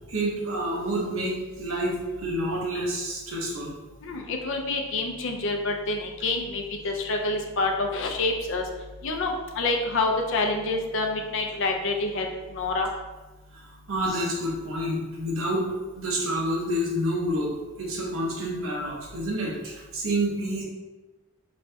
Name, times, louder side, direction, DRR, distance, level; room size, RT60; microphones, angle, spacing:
voice 1, 0.1-3.7 13.5-15.7 15.9-17.5 17.8-20.6, right 1 dB, 85° right, -3 dB, 0.9 m, -28 dB
voice 2, 4.0-8.6 9.0-12.9, left 3 dB, 65° left, 3 dB, 0.5 m, -27 dB
3.2 x 2.7 x 3.3 m, 1.2 s
head